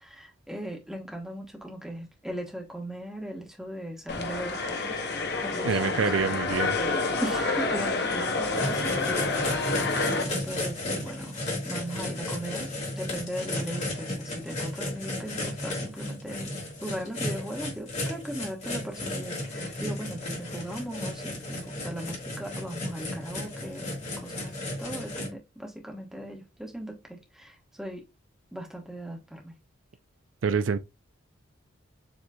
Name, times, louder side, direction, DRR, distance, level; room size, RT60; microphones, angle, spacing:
voice 1, 0.0-11.3 11.6-12.7 13.0-16.5 16.8-23.9 24.2-28.0 28.5-29.5, right 1 dB, ahead, 1.2 m, -38 dB
sound 1, 4.1-10.2, left 3 dB, 55° left, 0.9 m, -28 dB
voice 2, 5.6-6.7 30.4-30.8, right 6 dB, 70° right, 0.4 m, -26 dB
sound 2, 8.5-25.3, left 1 dB, 35° left, 1.7 m, -34 dB
7.4 x 3.1 x 2.3 m
head